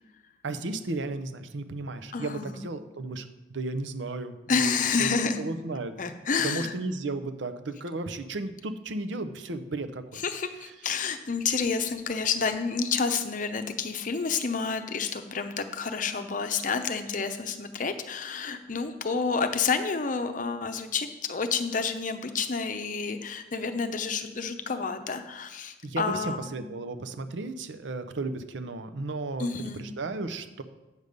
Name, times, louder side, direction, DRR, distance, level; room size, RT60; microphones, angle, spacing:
voice 1, 0.4-4.7 5.0-5.1 5.4-5.9 6.4-10.2 25.8-30.6, right 3 dB, 85° right, 10 dB, 0.7 m, -34 dB
voice 2, 2.1-2.6 4.5-5.4 6.0-6.7 10.1-26.5 29.4-29.8, left 5 dB, 45° left, 8 dB, 0.7 m, -29 dB
8.1 x 5.3 x 6.5 m, 1.1 s
head